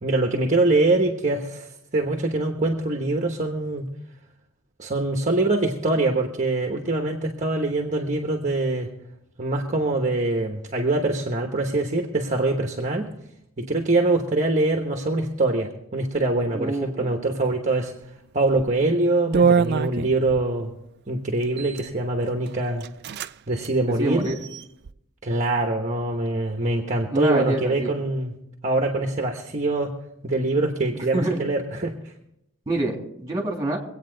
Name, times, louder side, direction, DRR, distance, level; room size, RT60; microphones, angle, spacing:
voice 1, 0.0-3.8 4.8-8.9 9.4-13.1 13.6-17.9 18.3-20.7 21.1-22.8 23.5-24.3 25.2-28.3 28.6-29.9 30.2-32.0, right 2 dB, 35° right, 3 dB, 1.1 m, -24 dB
voice 2, 16.5-17.1 24.0-24.4 27.1-27.9 31.1-31.4 32.7-33.8, right 2 dB, 20° right, 0 dB, 2.9 m, -26 dB
sound 1, 18.5-18.7 19.3-20.5 21.4-21.9 22.5-22.6 22.8-23.3 23.6-23.7 24.2-24.9, right 6 dB, 50° right, 0.4 m, -24 dB
24.0 x 8.7 x 3.9 m, 0.81 s
head